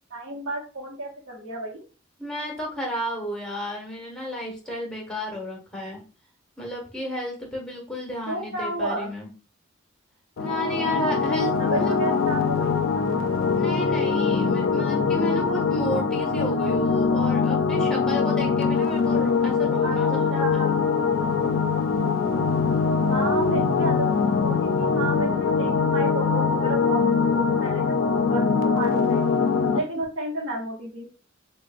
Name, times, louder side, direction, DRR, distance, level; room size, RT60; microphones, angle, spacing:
voice 1, 0.1-1.8 8.3-9.1 11.6-13.1 19.8-20.0 20.3-21.2 23.1-29.3 29.7-31.1, right 2 dB, 85° right, -5 dB, 0.9 m, -32 dB
voice 2, 2.2-6.0 6.6-9.3 10.4-12.0 13.6-20.8 29.9-30.0, equal, 5° left, -2 dB, 1.2 m, -32 dB
sound 1, 10.4-29.8, left 5 dB, 85° left, 0.4 m, -23 dB
6.2 x 2.2 x 2.4 m, 0.35 s
head